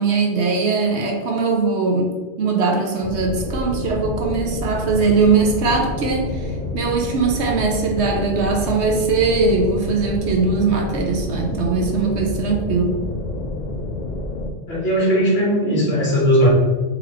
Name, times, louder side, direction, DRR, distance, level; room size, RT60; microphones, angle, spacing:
voice 1, 0.0-2.1 2.4-6.5 6.7-12.9, right 4 dB, 65° right, 2 dB, 0.9 m, -20 dB
sound 1, 3.0-14.5, left 2 dB, 75° left, 0.4 m, -28 dB
voice 2, 14.7-16.5, equal, 50° left, -5 dB, 1.6 m, -17 dB
3.9 x 2.9 x 4.3 m, 1.3 s
omnidirectional pair, 1.3 m